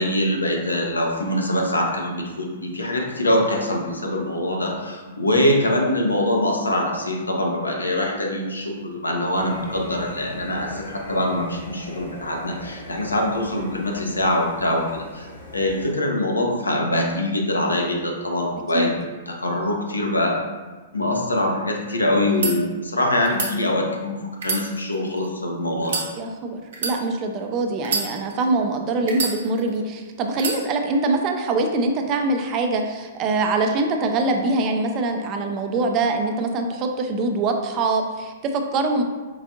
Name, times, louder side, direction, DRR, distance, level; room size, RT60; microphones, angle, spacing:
voice 1, 0.0-20.4 20.9-24.2 24.4-26.0, left 1 dB, 80° left, 1 dB, 0.6 m, -23 dB
sound 1, 9.3-15.9, left 1 dB, 65° left, 1.0 m, -40 dB
sound 2, 22.3-22.5 23.2-23.5 24.3-25.3 25.8-26.1 26.7-27.0 27.8-28.5 29.1-29.8 30.4-30.6, right 4 dB, 60° right, 0.8 m, -27 dB
voice 2, 26.2-39.0, right 3 dB, 30° right, 4 dB, 0.4 m, -23 dB
4.6 x 2.5 x 2.5 m, 1.3 s
figure-of-eight pair, 110°, 0 cm